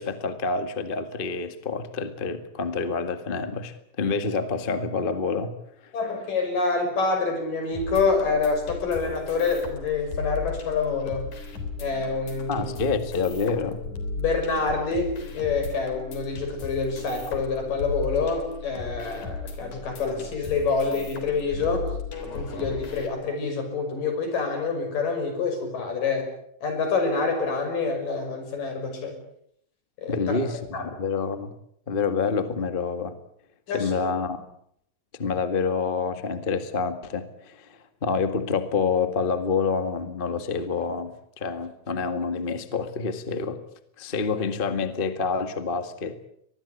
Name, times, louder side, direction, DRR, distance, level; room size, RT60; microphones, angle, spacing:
voice 1, 0.0-5.5 12.5-13.8 30.1-31.5 31.9-33.1 33.7-34.4 35.1-43.6 44.0-46.2, left 4 dB, 25° left, 9 dB, 1.3 m, -27 dB
voice 2, 5.9-11.3 11.8-12.7 14.2-21.9 22.3-26.3 26.6-29.2 30.0-30.4 30.7-30.9 33.7-33.9, left 4 dB, 80° left, 6 dB, 7.5 m, -27 dB
sound 1, 7.7-23.1, left 3 dB, 65° left, 5.0 m, -36 dB
24.0 x 20.0 x 8.5 m, 0.70 s
omnidirectional pair, 3.8 m